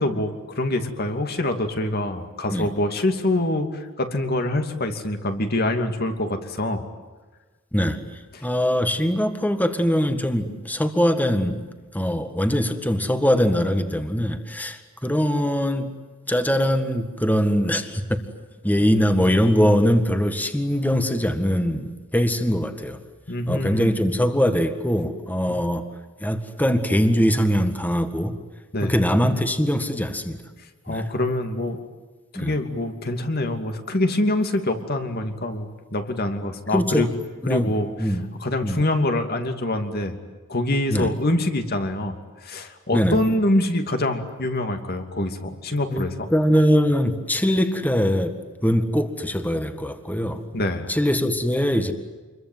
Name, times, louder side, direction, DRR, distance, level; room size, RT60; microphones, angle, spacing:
voice 1, 0.0-6.8 23.3-24.0 25.5-25.6 28.7-28.9 30.9-31.8 32.3-37.1 37.5-37.9 38.4-40.1 40.5-42.2 42.4-46.1 50.5-50.9, left 1 dB, 50° left, 6 dB, 2.7 m, -25 dB
voice 2, 7.7-15.9 16.3-18.2 18.6-23.0 23.5-25.8 26.2-28.3 28.8-30.4 30.9-31.1 32.4-32.5 36.7-37.1 37.4-37.7 38.0-38.2 38.6-38.8 40.9-41.1 42.9-43.2 45.9-48.3 48.6-50.4 50.9-51.9, equal, 10° left, 7 dB, 1.8 m, -22 dB
28.5 x 22.5 x 9.3 m, 1.3 s
head